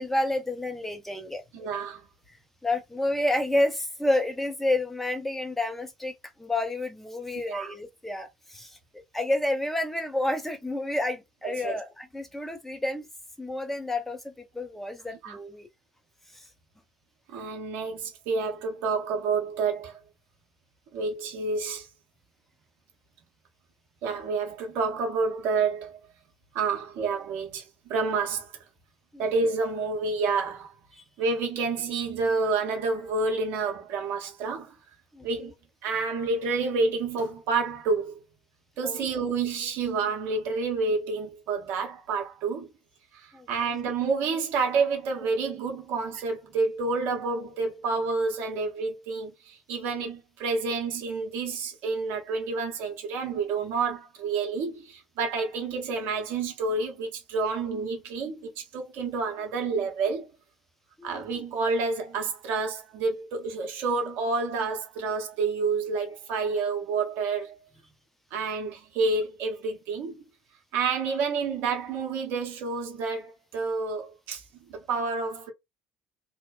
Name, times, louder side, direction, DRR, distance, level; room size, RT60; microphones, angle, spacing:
voice 1, 0.0-1.4 2.3-2.4 2.6-13.1 13.4-15.7 16.3-16.4 29.1-29.3 30.9-31.0 35.1-35.3 38.8-39.0 43.3-43.5 61.0-61.2, left 1 dB, 5° left, 0.7 m, -30 dB
voice 2, 1.5-2.0 7.5-7.7 11.4-11.8 15.2-15.4 17.3-20.0 20.9-21.9 24.0-26.0 26.5-28.5 29.2-30.7 31.2-34.7 35.2-35.5 35.8-38.2 38.8-42.7 43.1-60.3 61.0-67.6 68.3-70.2 70.7-75.5, right 4 dB, 55° right, 0.8 m, -29 dB
2.7 x 2.0 x 2.3 m
figure-of-eight pair, 55°, 4 cm